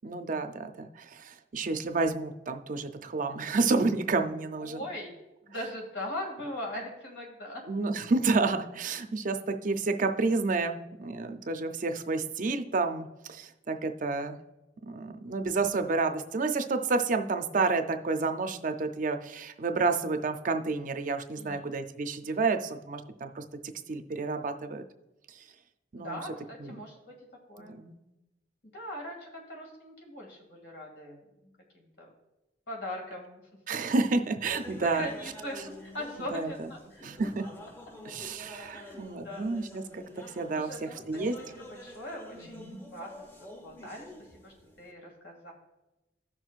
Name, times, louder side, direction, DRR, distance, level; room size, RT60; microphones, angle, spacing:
voice 1, 0.0-4.8 7.7-14.4 14.9-23.4 23.9-24.8 25.3-25.4 25.9-26.2 26.6-26.7 27.6-28.0 33.7-35.1 36.3-36.7 37.0-37.4 38.0-40.0 40.4-41.3 42.4-42.8, right 3 dB, 50° right, 7 dB, 0.5 m, -30 dB
voice 2, 4.6-5.2 5.4-7.6 21.3-21.6 26.0-27.1 27.5-27.8 28.6-32.1 32.7-33.4 34.8-37.0 38.7-39.5 40.2-45.5, left 1 dB, 85° left, 0 dB, 2.3 m, -41 dB
sound 1, 34.4-44.9, left 1 dB, 15° left, 0.8 m, -48 dB
15.0 x 6.2 x 2.4 m, 1.0 s
head